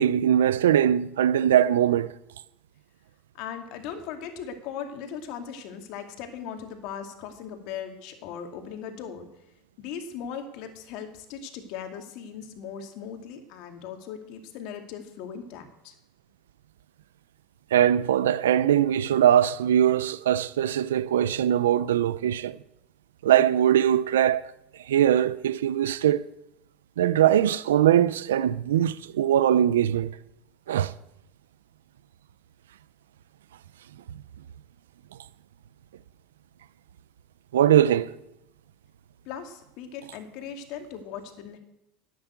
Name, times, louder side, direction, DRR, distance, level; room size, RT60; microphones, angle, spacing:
voice 1, 0.0-2.1 17.7-22.6 23.2-24.5 24.9-26.2 27.0-30.1 30.7-30.9 37.5-38.1, right 10 dB, 90° right, 0.6 m, -21 dB
voice 2, 3.3-9.3 9.8-15.9 39.2-41.6, left 7 dB, 65° left, 2.3 m, -38 dB
11.0 x 9.2 x 8.4 m
hypercardioid pair, 95°, 0 cm